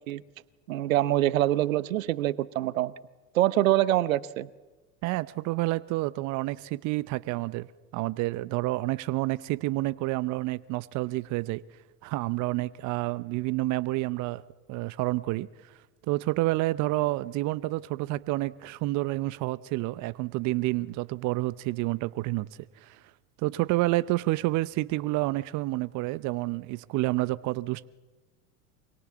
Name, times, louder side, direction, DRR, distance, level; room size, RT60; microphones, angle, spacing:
voice 1, 0.7-2.9 3.3-4.5, right 14 dB, 75° right, 0.9 m, -25 dB
voice 2, 5.0-7.7 7.9-11.6 12.0-14.4 14.7-15.5 16.1-22.5 22.8-23.0 23.4-27.9, right 19 dB, 45° right, 0.7 m, -29 dB
24.5 x 22.5 x 7.3 m
hypercardioid pair, 85°, 41 cm